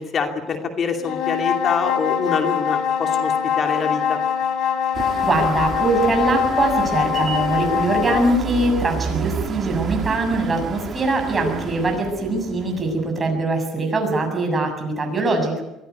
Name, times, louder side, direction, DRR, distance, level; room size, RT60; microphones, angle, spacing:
voice 1, 0.0-4.2, left 5 dB, 40° left, 4 dB, 2.8 m, -25 dB
sound 1, 1.0-8.4, left 8 dB, 65° left, 3.2 m, -23 dB
sound 2, 4.9-13.3, right 6 dB, 40° right, 2.4 m, -31 dB
voice 2, 5.2-15.6, right 2 dB, 25° right, 4 dB, 7.1 m, -22 dB
23.5 x 16.5 x 9.5 m, 0.94 s
cardioid pair, 120°, 0 cm